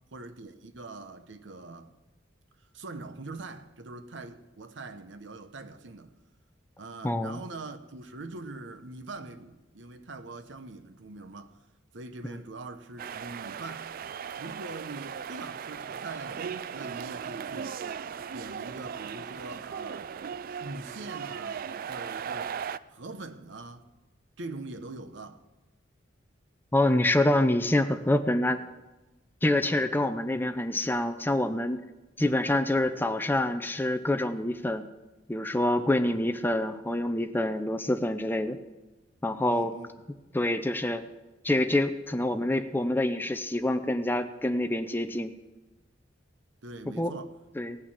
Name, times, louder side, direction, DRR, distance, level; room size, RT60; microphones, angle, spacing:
voice 1, 0.1-1.9 2.7-6.1 6.8-11.6 11.9-13.9 14.4-17.8 18.3-20.1 20.6-22.5 22.9-23.8 24.4-25.4 32.2-32.4 36.0-36.3 39.4-39.9 46.6-47.3, right 2 dB, 70° right, 0.9 m, -43 dB
voice 2, 7.0-7.4 26.7-28.6 29.4-31.8 32.2-34.8 35.3-38.6 39.2-39.7 40.3-41.0 41.4-45.3 47.0-47.1 47.6-47.8, left 1 dB, 10° left, 0.6 m, -26 dB
sound 1, 13.0-22.8, right 7 dB, 50° right, 0.3 m, -37 dB
18.0 x 6.3 x 7.4 m
head